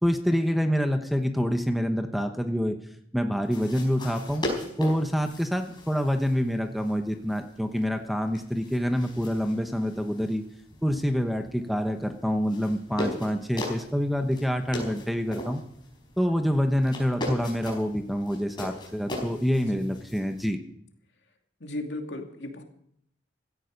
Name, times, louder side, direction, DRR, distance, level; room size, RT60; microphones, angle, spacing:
voice 1, 0.0-2.7 3.1-4.4 4.8-10.4 10.8-15.6 16.2-20.6, equal, ahead, 6 dB, 1.0 m, -26 dB
sound 1, 3.4-20.5, left 1 dB, 25° left, 5.0 m, -39 dB
voice 2, 21.6-22.6, left 2 dB, 75° left, 3 dB, 2.5 m, -36 dB
16.5 x 13.5 x 5.3 m, 0.70 s
head